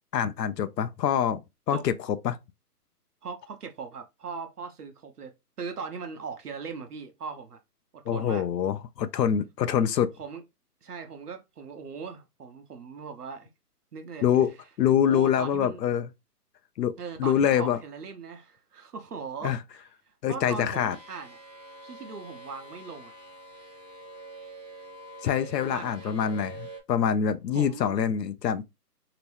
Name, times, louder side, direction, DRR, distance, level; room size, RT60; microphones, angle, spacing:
voice 1, 0.1-1.4 1.7-2.4 8.1-10.1 14.2-14.5 14.8-16.1 16.8-17.8 19.4-19.6 20.2-21.0 25.2-28.6, left 8 dB, 85° left, 0.6 m, -25 dB
voice 2, 3.2-7.6 7.9-8.4 9.7-9.9 10.2-10.4 10.8-13.5 13.9-14.3 14.9-15.8 17.0-21.4 21.8-23.1 25.6-26.2 27.5-28.0, right 5 dB, 70° right, 0.9 m, -40 dB
sound 1, 20.9-26.8, right 2 dB, 25° right, 0.6 m, -45 dB
3.0 x 2.9 x 3.2 m
hypercardioid pair, 175°, 48 cm